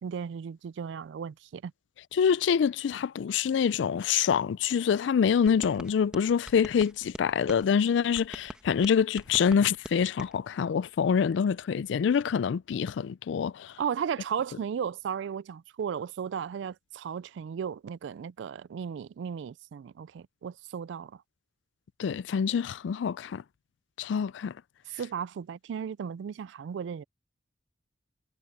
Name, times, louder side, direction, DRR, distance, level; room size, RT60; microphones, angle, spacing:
voice 1, 0.0-1.7 13.8-21.1 24.9-27.0, right 7 dB, 70° right, 0.3 m, -35 dB
voice 2, 2.1-13.8 22.0-23.4 24.0-24.5, left 7 dB, 70° left, 0.3 m, -26 dB
sound 1, 5.5-7.6 8.1-10.3, equal, 5° right, 1.3 m, -44 dB
head